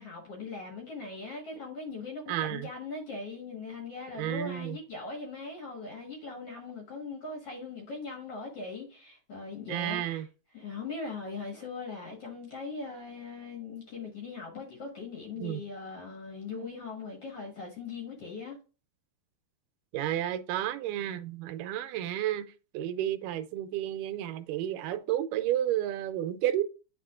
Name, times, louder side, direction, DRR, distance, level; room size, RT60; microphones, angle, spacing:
voice 1, 0.0-10.3 10.5-18.6, left 4 dB, 55° left, 2.1 m, -40 dB
voice 2, 2.3-2.7 4.2-4.8 9.7-10.3 15.4-15.6 19.9-22.5 22.7-26.6, right 12 dB, 85° right, 2.2 m, -31 dB
9.2 x 4.3 x 2.4 m
omnidirectional pair, 3.7 m